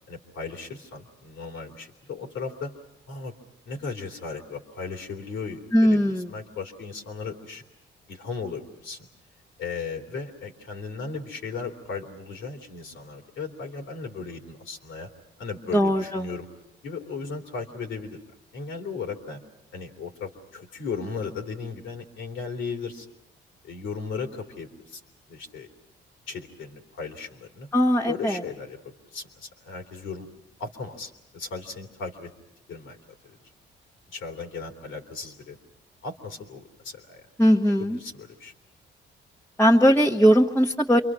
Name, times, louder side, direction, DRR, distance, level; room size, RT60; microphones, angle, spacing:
voice 1, 0.1-2.7 3.1-3.3 3.6-7.6 8.1-9.1 9.6-15.1 15.4-16.5 16.8-18.2 18.5-19.4 19.7-23.1 23.6-25.0 25.3-25.7 26.3-27.7 28.1-28.8 29.1-30.3 30.6-32.3 32.7-33.0 33.2-33.4 34.1-35.6 36.0-37.2 37.8-38.5, left 5 dB, 80° left, 2 dB, 2.9 m, -36 dB
voice 2, 5.7-6.3 15.7-16.2 27.7-28.4 37.4-38.0 39.6-41.0, equal, 10° left, -3 dB, 1.4 m, -19 dB
28.0 x 23.5 x 6.1 m, 0.90 s
cardioid pair, 90°, 20 cm